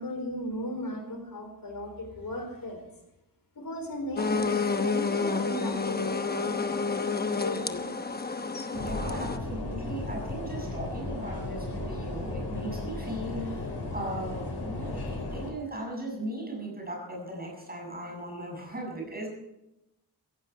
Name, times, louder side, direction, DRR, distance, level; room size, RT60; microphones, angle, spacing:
voice 1, 0.0-2.8 3.6-7.9, left 1 dB, 55° left, 5 dB, 4.3 m, -37 dB
sound 1, 4.2-9.4, left 4 dB, 25° left, 0.9 m, -29 dB
sound 2, 8.7-15.5, left 2 dB, 85° left, 5.0 m, -35 dB
voice 2, 8.7-19.3, right 1 dB, 25° right, 0 dB, 7.1 m, -38 dB
16.0 x 15.5 x 4.7 m, 0.90 s
wide cardioid pair, 130°, 39 cm